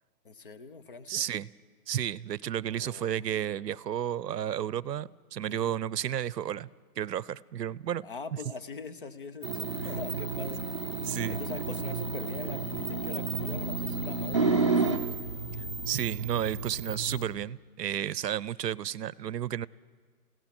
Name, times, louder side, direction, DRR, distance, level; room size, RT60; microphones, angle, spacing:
voice 1, 0.2-1.2 2.7-3.1 5.5-5.8 8.0-10.6 11.3-15.1, left 4 dB, 35° left, 12 dB, 0.9 m, -43 dB
voice 2, 1.1-1.5 1.9-6.7 7.0-8.1 9.8-9.9 11.0-11.4 15.9-19.7, right 10 dB, 85° right, 22 dB, 0.7 m, -32 dB
sound 1, 9.4-17.2, right 4 dB, 20° right, 0.6 m, -31 dB
29.0 x 17.0 x 6.1 m, 1.5 s
hypercardioid pair, 170°, 48 cm